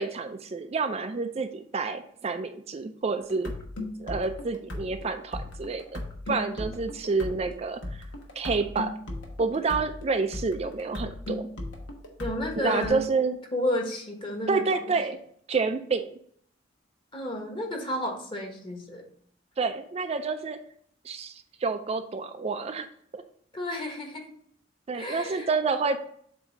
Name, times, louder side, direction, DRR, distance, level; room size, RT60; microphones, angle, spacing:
voice 1, 0.0-3.5 4.0-6.0 6.3-8.0 8.4-8.9 9.4-11.5 12.6-13.4 14.5-15.2 15.5-16.1 19.6-20.6 21.0-22.9 23.1-23.2 24.9-26.0, right 4 dB, 35° right, 7 dB, 0.4 m, -29 dB
sound 1, 3.3-12.9, left 1 dB, 85° left, 1.3 m, -37 dB
voice 2, 12.2-13.1 13.5-14.9 17.1-19.0 23.5-24.3 24.9-25.5, left 1 dB, 25° left, 1 dB, 1.3 m, -31 dB
7.7 x 2.7 x 5.1 m, 0.62 s
head